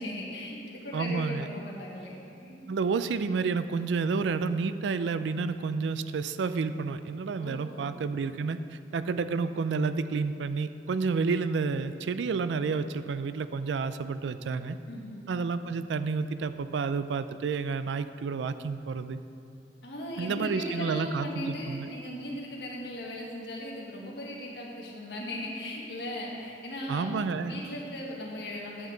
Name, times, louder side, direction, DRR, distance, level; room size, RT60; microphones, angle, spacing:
voice 1, 0.0-2.6 7.4-7.9 14.9-15.2 19.8-28.9, left 1 dB, 70° left, -2 dB, 1.6 m, -38 dB
voice 2, 0.9-1.5 2.7-14.8 15.3-19.2 20.2-21.9 26.9-27.6, right 4 dB, 85° right, 12 dB, 0.4 m, -30 dB
9.6 x 7.9 x 3.9 m, 2.7 s
head